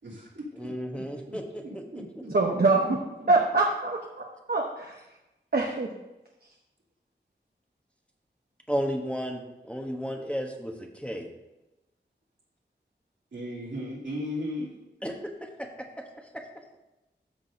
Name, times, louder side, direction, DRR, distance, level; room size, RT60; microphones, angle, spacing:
voice 1, 0.0-1.0 1.3-1.4 1.6-3.3 13.3-14.7, left 1 dB, 85° right, -7 dB, 3.0 m, -37 dB
voice 2, 0.5-2.0 8.7-11.3 15.0-15.1 15.6-15.9 16.3-16.4, equal, 5° left, 1 dB, 1.0 m, -33 dB
voice 3, 2.3-2.8 3.3-4.0 4.5-4.9 5.5-5.9, right 3 dB, 55° right, 0 dB, 0.9 m, -23 dB
13.0 x 6.2 x 2.7 m, 0.98 s
wide cardioid pair, 85°, 19 cm